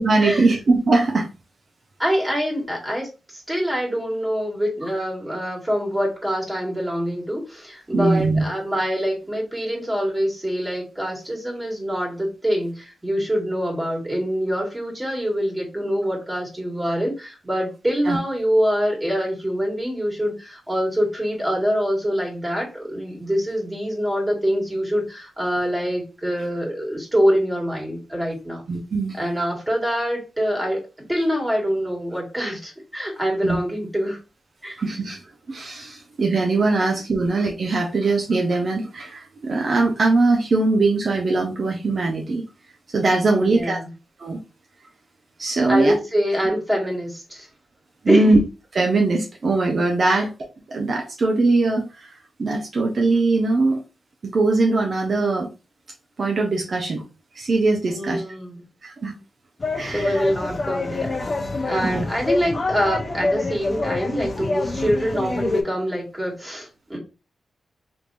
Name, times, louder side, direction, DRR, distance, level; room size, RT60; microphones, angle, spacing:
voice 1, 0.0-1.3 2.5-2.6 7.9-8.4 18.1-18.2 28.7-29.2 33.4-33.6 34.8-35.2 35.5-42.4 42.9-43.8 44.2-44.4 45.4-46.0 48.0-48.4 48.7-50.3 50.7-52.1 52.4-53.8 54.2-55.5 56.2-57.0 57.4-58.2 58.8-59.1 59.8-60.3 61.8-62.0, right 3 dB, 55° right, 1 dB, 0.6 m, -21 dB
voice 2, 2.0-28.6 29.1-30.8 31.1-34.2 34.6-34.8 43.3-43.9 45.7-47.5 48.0-48.3 50.1-50.3 57.9-58.6 59.8-61.2 61.6-67.0, equal, 15° right, -2 dB, 1.6 m, -25 dB
sound 1, 59.6-65.6, left 3 dB, 40° left, 0.7 m, -26 dB
3.5 x 2.9 x 2.5 m, 0.29 s
cardioid pair, 65°, 0 cm